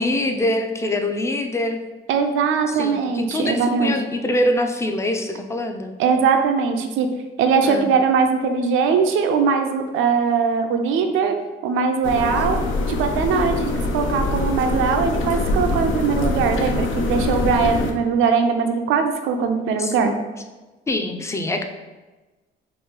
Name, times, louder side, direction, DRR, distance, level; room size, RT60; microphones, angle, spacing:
voice 1, 0.0-1.8 2.7-6.0 7.6-7.9 19.8-19.9 20.9-21.6, left 1 dB, 15° left, 5 dB, 0.4 m, -24 dB
voice 2, 2.1-3.9 6.0-7.1 7.4-11.4 11.6-12.6 12.9-20.1, right 5 dB, 85° right, 5 dB, 0.4 m, -20 dB
sound 1, 12.0-17.9, left 2 dB, 75° left, 0.5 m, -23 dB
3.0 x 2.4 x 3.6 m, 1.2 s
cardioid pair, 90°, 20 cm